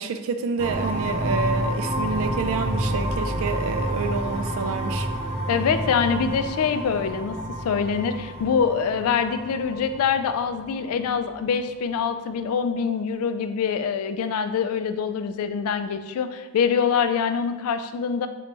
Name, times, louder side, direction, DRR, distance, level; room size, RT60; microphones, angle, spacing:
voice 1, 0.0-5.1, right 5 dB, 65° right, 9 dB, 0.3 m, -28 dB
sound 1, 0.6-11.1, equal, 30° right, 0.7 m, -29 dB
voice 2, 5.5-7.4 7.6-18.3, left 6 dB, 70° left, 11 dB, 0.3 m, -24 dB
3.8 x 3.1 x 3.3 m, 1.2 s
head